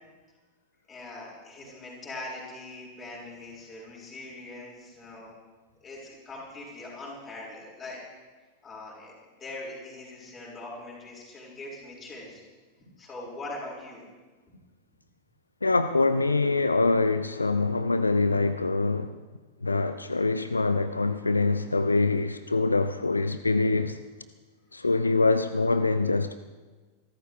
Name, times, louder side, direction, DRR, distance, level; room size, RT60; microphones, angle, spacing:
voice 1, 0.9-5.3 5.8-8.0 8.6-9.1 9.4-12.4 13.0-14.1, left 2 dB, 25° left, 6.0 m, -41 dB
voice 2, 15.6-19.2 19.6-24.0 24.7-26.3, left 3 dB, 80° left, 0.4 m, -24 dB
25.5 x 13.5 x 3.5 m
figure-of-eight pair, 90°, 0 cm